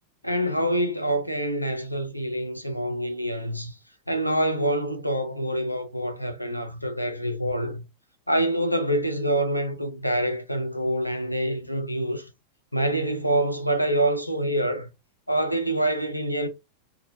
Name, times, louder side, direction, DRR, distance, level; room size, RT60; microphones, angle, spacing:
voice 1, 0.2-3.7 4.1-7.8 8.3-12.3 12.7-14.9 15.3-16.5, right 1 dB, 90° left, 0.5 m, -26 dB
2.9 x 2.3 x 2.5 m
figure-of-eight pair, 90°, 0 cm